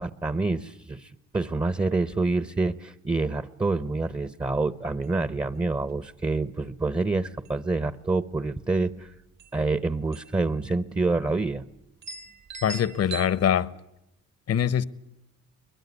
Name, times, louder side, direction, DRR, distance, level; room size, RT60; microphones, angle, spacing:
voice 1, 0.0-9.1 9.5-11.6, right 3 dB, 15° right, 0.9 m, -27 dB
sound 1, 5.0-5.1 5.4-5.5 5.9-6.2 6.8-7.0 7.3-8.0 9.0-9.1 9.4-9.6 10.1-10.4 10.7-10.8 11.5-11.6 12.0-13.3, right 5 dB, 60° right, 1.8 m, -40 dB
voice 2, 12.6-13.7 14.5-14.9, left 9 dB, 55° left, 1.0 m, -23 dB
23.0 x 21.5 x 9.7 m
cardioid pair, 90°, 30 cm